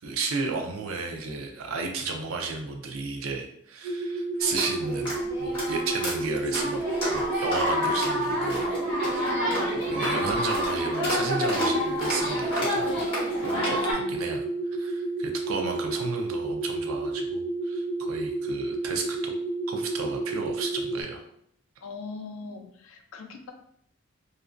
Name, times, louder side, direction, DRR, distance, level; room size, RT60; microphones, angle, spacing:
voice 1, 0.0-8.7 9.0-9.4 9.9-13.1 13.4-14.4 14.7-19.3 19.7-21.2, right 4 dB, 75° right, 3 dB, 0.4 m, -33 dB
sound 1, 3.8-21.0, right 2 dB, 25° right, 0.6 m, -31 dB
sound 2, 4.4-13.9, left 1 dB, 25° left, 1.0 m, -29 dB
voice 2, 9.4-9.7 13.4-14.2 21.8-23.5, left 4 dB, 70° left, 5 dB, 0.4 m, -41 dB
2.4 x 2.1 x 2.4 m, 0.69 s
head